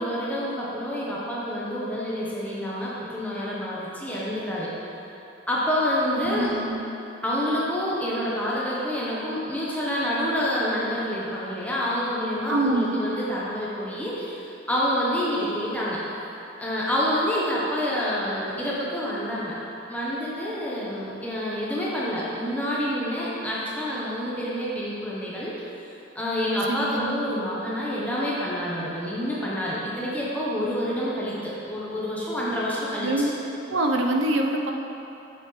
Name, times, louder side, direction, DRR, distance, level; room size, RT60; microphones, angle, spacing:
voice 1, 0.0-4.7 5.5-6.5 7.2-16.0 16.6-19.6 19.9-25.5 26.1-33.1, equal, 10° left, -7 dB, 0.9 m, -28 dB
voice 2, 6.1-6.8 12.5-13.0 26.7-27.0 33.0-33.3 33.7-34.7, right 2 dB, 85° right, 2 dB, 0.7 m, -25 dB
7.5 x 7.0 x 3.2 m, 3.0 s
head